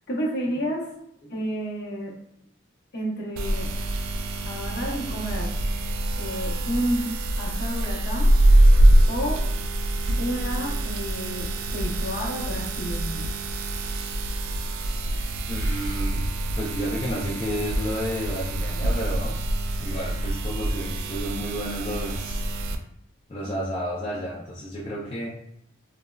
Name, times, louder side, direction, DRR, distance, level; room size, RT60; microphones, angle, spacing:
voice 1, 0.1-0.9 1.3-2.1 2.9-3.7 4.4-5.5 6.2-8.3 9.1-9.4 10.2-13.3, equal, 55° left, -4 dB, 0.7 m, -30 dB
sound 1, 3.4-22.8, right 1 dB, 90° right, 0.3 m, -24 dB
voice 2, 15.5-16.2 16.6-19.4 19.8-22.4 23.3-25.3, equal, 25° left, -7 dB, 0.3 m, -31 dB
3.3 x 2.0 x 2.3 m, 0.73 s
head